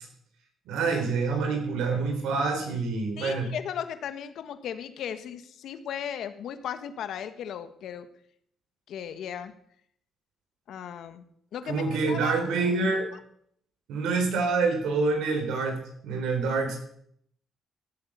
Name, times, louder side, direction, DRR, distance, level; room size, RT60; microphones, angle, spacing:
voice 1, 0.7-3.5 11.6-13.1 13.9-16.8, right 4 dB, 90° right, 4 dB, 4.0 m, -27 dB
voice 2, 3.2-8.1 8.9-9.5 10.7-11.2 11.5-12.5 13.1-13.2, left 9 dB, 75° left, 10 dB, 1.4 m, -36 dB
16.5 x 8.3 x 6.8 m, 0.69 s
cardioid pair, 90°, 0 cm